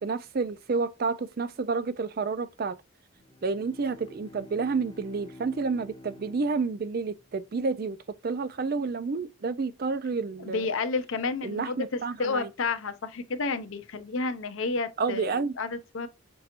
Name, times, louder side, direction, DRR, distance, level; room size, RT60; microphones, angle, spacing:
voice 1, 0.0-2.8 3.4-8.0 8.2-10.7 11.4-12.5 15.0-15.6, right 4 dB, 45° right, 0.4 m, -30 dB
Bowed string instrument, 3.1-7.5, left 1 dB, 20° left, 0.4 m, -49 dB
voice 2, 10.4-16.1, left 4 dB, 70° left, 0.6 m, -31 dB
5.3 x 2.9 x 2.5 m
head